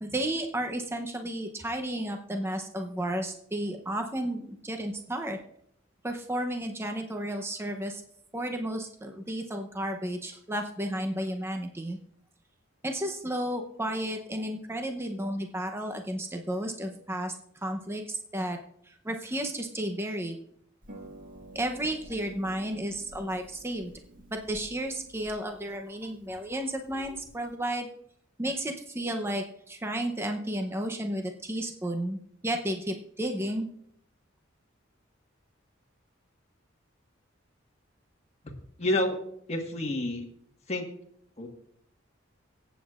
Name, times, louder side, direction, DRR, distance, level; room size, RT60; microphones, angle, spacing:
voice 1, 0.0-5.4 6.0-8.0 8.3-12.0 12.8-18.6 18.8-20.4 21.5-23.9 24.3-27.9 28.4-33.7, right 1 dB, 10° right, 4 dB, 0.7 m, -33 dB
Harp, 20.8-27.6, right 1 dB, 45° right, 1.7 m, -51 dB
voice 2, 38.8-39.2 39.5-40.3 40.7-40.9 41.4-41.5, left 1 dB, 35° left, 1 dB, 1.4 m, -28 dB
24.0 x 8.2 x 2.4 m, 0.70 s
head